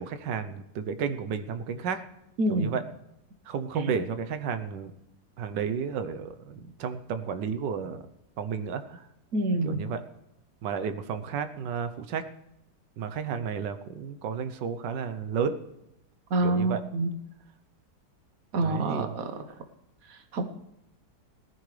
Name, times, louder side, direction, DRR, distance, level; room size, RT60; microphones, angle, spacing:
voice 1, 0.0-2.0 2.5-2.8 3.5-4.9 5.4-8.0 8.4-9.1 9.6-10.0 10.6-12.3 13.0-15.6 16.4-16.8 18.6-19.2, right 6 dB, 80° right, 10 dB, 1.5 m, -32 dB
voice 2, 2.4-2.8 3.7-3.9 9.3-9.9 16.3-17.1 18.5-19.6 20.0-20.5, right 2 dB, 55° right, 8 dB, 1.4 m, -27 dB
18.5 x 14.0 x 3.3 m, 0.85 s
omnidirectional pair, 1.9 m